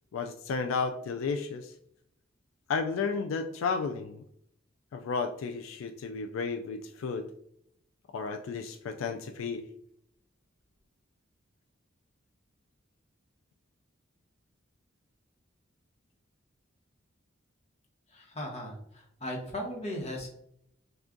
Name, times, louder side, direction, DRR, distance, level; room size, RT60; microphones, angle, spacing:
voice 1, 0.1-1.7 2.7-4.2 4.9-7.3 8.1-9.6, left 5 dB, 80° left, 7 dB, 0.3 m, -33 dB
voice 2, 18.1-20.3, left 1 dB, 35° left, 0 dB, 1.0 m, -37 dB
6.0 x 2.3 x 2.5 m, 0.72 s
head